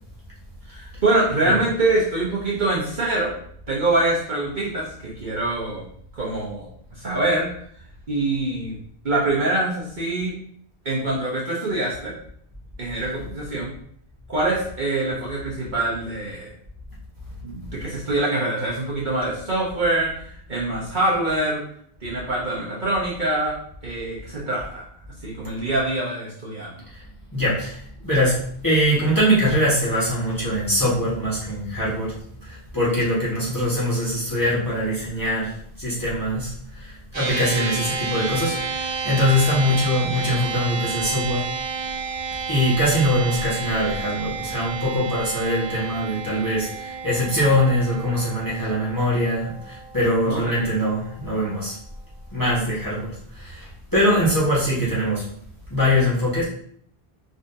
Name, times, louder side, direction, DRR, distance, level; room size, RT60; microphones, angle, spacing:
voice 1, 0.7-3.3 3.7-5.8 6.1-7.5 8.1-8.8 9.0-10.4 10.8-12.1 12.8-13.7 14.3-16.5 17.4-21.6 22.0-23.6 23.8-24.8 25.2-26.8 50.3-50.7, right 2 dB, 50° right, -5 dB, 1.1 m, -24 dB
voice 2, 27.3-41.5 42.5-51.8 52.3-55.3 55.7-56.4, equal, 20° left, -8 dB, 1.6 m, -22 dB
sound 1, 37.1-50.7, right 5 dB, 30° right, 0.7 m, -31 dB
5.0 x 3.9 x 2.7 m, 0.62 s
omnidirectional pair, 1.0 m